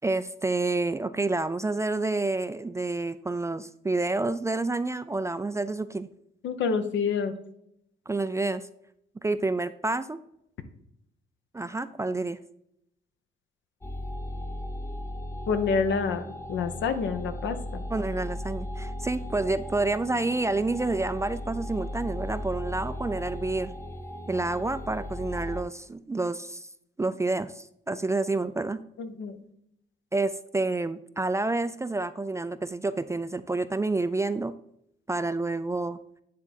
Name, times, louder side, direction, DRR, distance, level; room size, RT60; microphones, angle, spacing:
voice 1, 0.0-6.1 8.1-8.6 9.2-10.2 11.5-12.4 17.9-23.7 24.3-26.7 27.0-28.8 30.1-34.5 35.1-36.0, right 2 dB, 15° right, 13 dB, 0.3 m, -29 dB
voice 2, 6.4-7.3 15.5-16.2 16.5-17.8 29.0-29.4, left 5 dB, 70° left, 9 dB, 0.9 m, -27 dB
sound 1, 13.8-25.6, left 1 dB, 15° left, 0.8 m, -36 dB
9.7 x 3.7 x 4.1 m, 0.76 s
cardioid pair, 90°, 20 cm